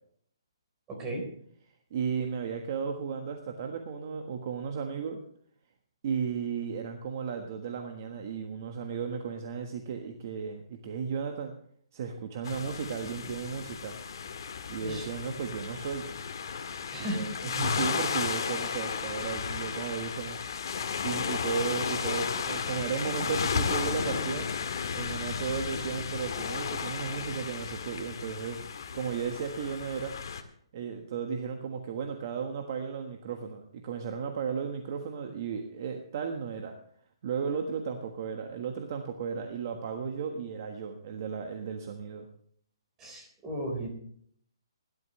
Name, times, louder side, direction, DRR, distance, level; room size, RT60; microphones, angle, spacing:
voice 1, 0.9-1.2 14.8-15.1 16.9-17.3 43.0-43.9, right 1 dB, 15° right, 1 dB, 4.1 m, -35 dB
voice 2, 1.9-5.2 6.0-11.5 11.9-14.0 14.7-16.1 17.1-20.4 21.0-24.5 24.9-28.6 28.9-30.1 30.7-36.8 37.2-42.3, right 6 dB, 40° right, 4 dB, 1.4 m, -34 dB
sound 1, 12.4-30.4, left 6 dB, 55° left, 1.7 m, -34 dB
18.5 x 12.0 x 3.2 m, 0.62 s
hypercardioid pair, 165°, 3 cm